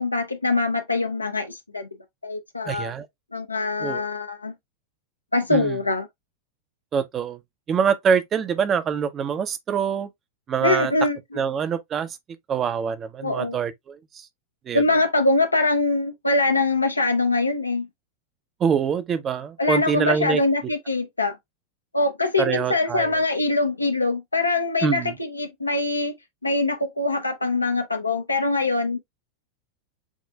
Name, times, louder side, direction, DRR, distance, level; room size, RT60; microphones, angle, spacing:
voice 1, 0.0-1.9 2.2-2.9 3.3-4.5 5.3-6.1 10.6-11.4 13.2-13.6 14.7-17.9 19.6-21.4 21.9-26.1 26.4-29.0, left 2 dB, 80° left, 0.7 m, -23 dB
voice 2, 2.7-3.1 3.8-4.0 5.5-5.8 6.9-7.4 7.7-10.1 10.5-10.9 11.4-12.2 12.5-14.3 14.7-14.8 18.6-20.4 22.4-23.1 24.8-25.1, right 7 dB, 25° right, 0.6 m, -25 dB
7.2 x 2.6 x 2.2 m
figure-of-eight pair, 90°, 0 cm